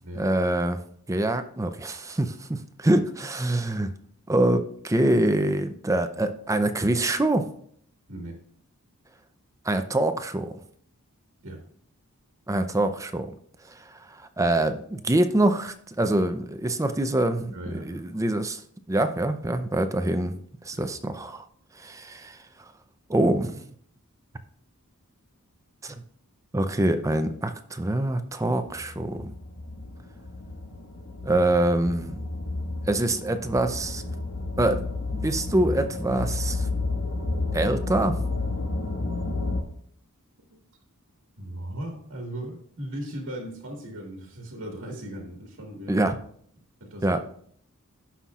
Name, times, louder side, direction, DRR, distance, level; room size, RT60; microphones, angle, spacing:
voice 1, 0.1-0.8 1.1-3.9 4.3-7.4 9.6-10.6 12.5-13.3 13.7-13.8 14.2-18.6 18.9-20.4 20.7-21.4 21.8-22.4 23.1-23.6 25.8-26.0 26.5-29.3 31.2-32.2 32.9-34.0 34.6-36.7 37.5-38.2 45.9-46.2 47.0-47.2, right 1 dB, 15° right, 9 dB, 0.5 m, -25 dB
voice 2, 8.1-8.4 11.4-11.7 17.5-18.2 20.7-20.8 41.4-46.0 46.8-47.2, right 1 dB, 70° right, 1 dB, 1.7 m, -37 dB
sound 1, 28.7-39.6, left 3 dB, 75° left, 1.4 m, -31 dB
17.0 x 5.8 x 2.4 m, 0.63 s
head